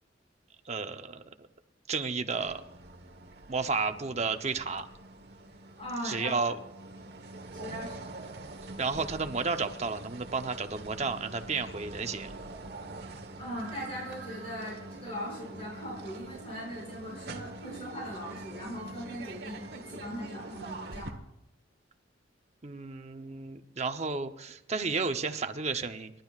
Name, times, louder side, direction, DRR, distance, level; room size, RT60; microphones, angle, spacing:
voice 1, 0.7-1.2 1.9-2.6 3.5-4.9 6.0-6.6 8.8-12.3 22.6-26.1, right 4 dB, 35° right, 7 dB, 0.9 m, -32 dB
sound 1, 2.3-21.1, right 2 dB, 60° right, 1.3 m, -45 dB
voice 2, 5.8-6.5 7.5-8.0 13.4-21.1, equal, 35° left, -4 dB, 6.2 m, -39 dB
29.0 x 12.0 x 2.5 m, 0.86 s
head